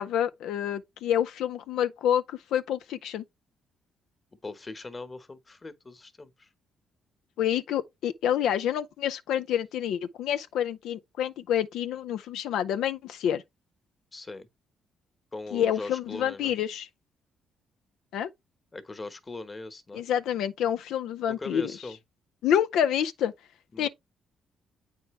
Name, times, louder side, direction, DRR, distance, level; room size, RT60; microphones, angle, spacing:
voice 1, 0.0-3.2 7.4-13.4 15.5-16.9 18.1-18.3 19.9-21.7 22.4-23.3 23.8-23.9, left 10 dB, 85° left, 0.4 m, -28 dB
voice 2, 4.4-6.5 14.1-14.5 15.3-16.5 18.7-20.0 21.3-22.0 23.7-23.9, left 3 dB, 25° left, 1.1 m, -40 dB
8.2 x 4.5 x 3.2 m
cardioid pair, 90°, 0 cm